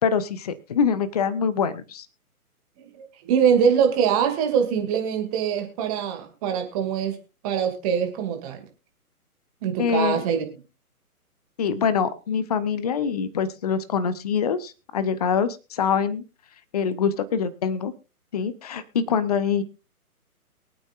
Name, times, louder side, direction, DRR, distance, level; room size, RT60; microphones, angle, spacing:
voice 1, 0.0-2.1 9.8-10.2 11.6-16.2 16.7-17.9 18.3-19.6, left 6 dB, 25° left, 15 dB, 0.7 m, -24 dB
voice 2, 3.2-7.2 7.4-8.6 9.6-10.4, right 7 dB, 25° right, 5 dB, 2.2 m, -23 dB
23.5 x 8.8 x 2.5 m, 0.30 s
figure-of-eight pair, 130°, 45 cm